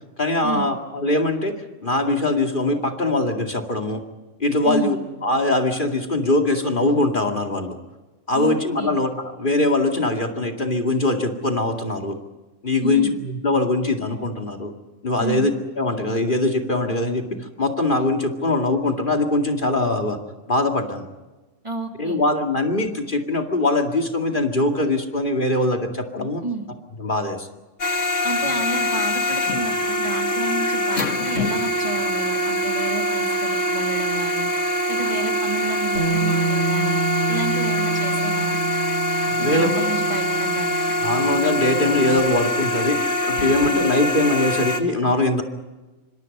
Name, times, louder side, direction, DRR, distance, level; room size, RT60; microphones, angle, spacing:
voice 1, 0.2-4.0 4.4-5.0 5.2-7.8 8.3-12.2 12.6-14.7 15.0-15.5 15.8-17.3 17.6-20.2 20.5-21.0 22.0-26.4 27.0-27.5 39.4-39.9 41.0-45.4, left 2 dB, 40° left, 3 dB, 2.5 m, -22 dB
voice 2, 8.3-8.9 12.8-13.2 15.2-15.5 21.6-22.2 26.4-26.7 28.2-34.5 34.9-37.0 37.3-38.6 39.4-40.8, right 3 dB, 25° right, 3 dB, 2.7 m, -31 dB
sound 1, 27.8-44.8, equal, 80° left, 2.4 m, -23 dB
Bass guitar, 36.0-42.2, right 4 dB, 55° left, 2.5 m, -28 dB
27.0 x 25.5 x 5.4 m, 1.2 s
omnidirectional pair, 1.3 m